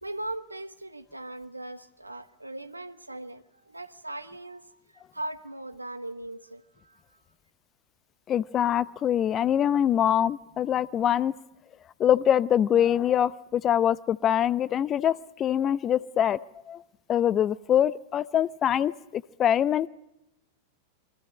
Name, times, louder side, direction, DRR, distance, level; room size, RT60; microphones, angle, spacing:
voice 1, 0.0-7.2, right 1 dB, 85° right, 12 dB, 1.1 m, -39 dB
voice 2, 8.3-11.3 12.0-16.4 16.7-16.8 17.1-19.9, left 10 dB, 30° left, 19 dB, 0.7 m, -24 dB
28.5 x 24.0 x 5.0 m, 0.90 s
figure-of-eight pair, 90°, 0 cm